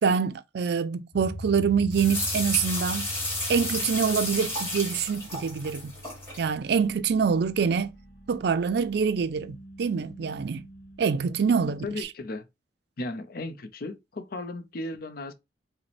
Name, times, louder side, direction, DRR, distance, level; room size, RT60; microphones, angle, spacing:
voice 1, 0.0-3.1 3.5-5.9 6.4-7.9 8.3-10.7 11.0-11.9, right 6 dB, 65° right, 0.4 m, -25 dB
sound 1, 1.1-12.0, equal, 75° left, 1.0 m, -43 dB
sound 2, 1.9-6.4, left 1 dB, 15° left, 1.5 m, -32 dB
voice 2, 11.8-12.5 13.0-15.3, left 2 dB, 55° left, 0.6 m, -35 dB
4.9 x 2.1 x 3.2 m
head